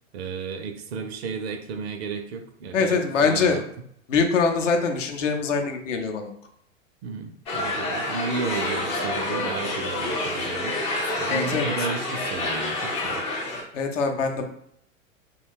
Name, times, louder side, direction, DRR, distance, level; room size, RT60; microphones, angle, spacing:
voice 1, 0.1-3.6 7.0-10.8 11.2-13.2, right 5 dB, 55° right, 5 dB, 0.5 m, -33 dB
voice 2, 2.7-3.6 4.1-6.3 11.3-11.7 13.7-14.5, left 5 dB, 65° left, 4 dB, 0.6 m, -23 dB
sound 1, 7.5-13.6, left 2 dB, 15° left, 0.3 m, -28 dB
2.6 x 2.3 x 3.4 m, 0.70 s
figure-of-eight pair, 90°, 39 cm